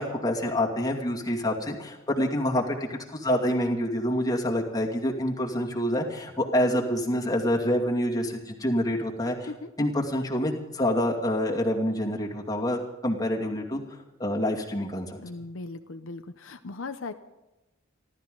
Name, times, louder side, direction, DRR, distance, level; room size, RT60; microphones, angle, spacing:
voice 1, 0.0-9.5 9.8-15.2, left 1 dB, 15° left, -1 dB, 2.4 m, -27 dB
voice 2, 15.2-17.1, left 3 dB, 70° left, 8 dB, 0.7 m, -38 dB
28.5 x 13.0 x 3.9 m, 1.0 s
head